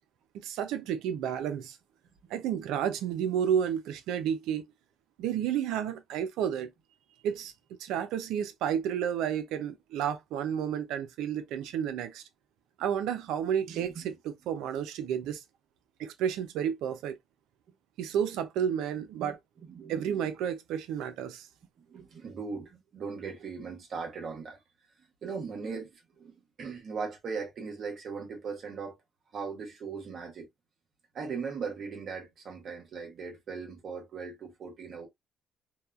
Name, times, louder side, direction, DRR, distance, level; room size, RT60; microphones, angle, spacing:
voice 1, 0.4-1.8 2.3-4.6 5.2-6.7 7.2-7.5 7.8-12.2 12.8-15.4 16.0-17.2 18.0-19.4 19.9-21.5, right 9 dB, 85° right, 0.4 m, -31 dB
voice 2, 13.7-14.1 19.2-19.4 19.6-20.3 21.9-24.6 25.2-29.0 29.3-30.5 31.1-35.1, right 5 dB, 60° right, 1.0 m, -39 dB
2.8 x 2.2 x 2.3 m
supercardioid pair, 75°, 0 cm